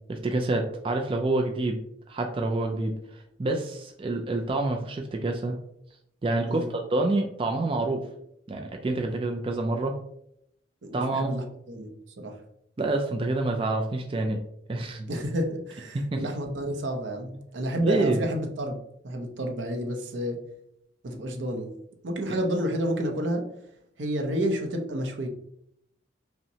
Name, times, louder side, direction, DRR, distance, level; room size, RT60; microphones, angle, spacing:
voice 1, 0.1-1.8 2.1-5.6 6.2-6.6 6.9-8.0 8.5-9.9 10.9-11.3 12.8-14.4 14.7-15.1 15.9-16.2 17.8-18.2, right 2 dB, 30° right, 3 dB, 0.3 m, -27 dB
voice 2, 10.8-12.4 15.1-18.8 19.0-20.4 21.0-21.7 22.0-23.4 24.0-25.3, equal, 80° right, 3 dB, 0.7 m, -30 dB
5.5 x 2.1 x 2.7 m, 0.75 s
head